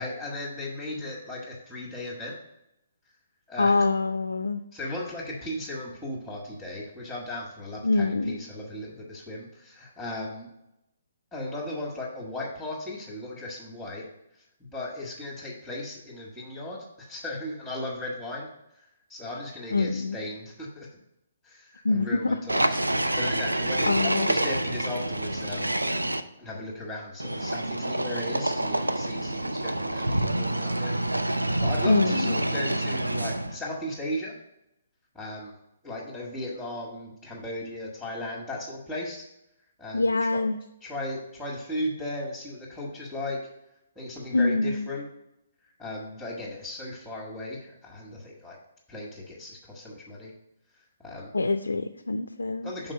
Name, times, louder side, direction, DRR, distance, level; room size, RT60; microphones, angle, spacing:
voice 1, 0.0-2.4 3.5-3.9 4.7-10.5 11.3-20.9 21.4-22.8 23.1-25.7 26.4-34.4 35.1-35.5 35.8-39.3 39.8-40.4 40.8-43.4 43.9-45.1 45.6-48.6 48.9-50.3 50.7-51.3 52.6-52.9, left 1 dB, ahead, -4 dB, 1.3 m, -36 dB
voice 2, 3.6-4.6 7.8-8.4 19.7-20.2 21.8-22.1 22.5-22.6 23.9-24.3 31.9-32.4 39.9-40.6 44.3-44.9 51.3-52.7, left 3 dB, 75° left, 8 dB, 0.3 m, -25 dB
sound 1, 22.5-26.2 27.2-33.6, right 1 dB, 85° right, 0.4 m, -27 dB
5.8 x 3.9 x 5.3 m, 0.85 s
figure-of-eight pair, 130°, 0 cm